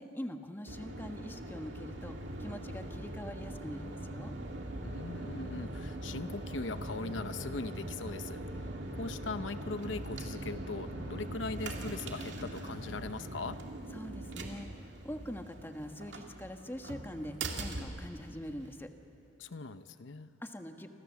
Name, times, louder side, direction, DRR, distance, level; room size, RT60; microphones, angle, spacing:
voice 1, 0.0-4.3 13.9-18.9 20.4-20.9, equal, 10° left, 5 dB, 1.3 m, -43 dB
sound 1, 0.7-18.7, right 1 dB, 65° right, 2.4 m, -41 dB
voice 2, 4.8-13.6 19.4-20.3, left 3 dB, 80° left, 11 dB, 0.8 m, -40 dB
29.0 x 25.5 x 7.3 m, 2.7 s
head